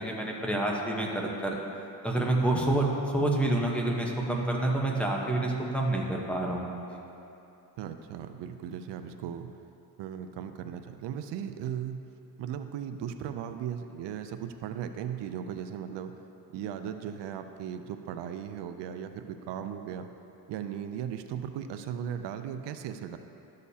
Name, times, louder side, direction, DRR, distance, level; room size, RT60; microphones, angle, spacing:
voice 1, 0.0-1.6 2.0-2.9 3.1-6.6 6.9-7.0, right 2 dB, 5° left, -2 dB, 0.9 m, -28 dB
voice 2, 7.8-9.5 10.0-12.0 12.4-16.1 16.5-20.1 20.5-23.2, right 9 dB, 85° right, 8 dB, 0.6 m, -37 dB
12.5 x 6.6 x 2.8 m, 2.8 s
cardioid pair, 115°, 41 cm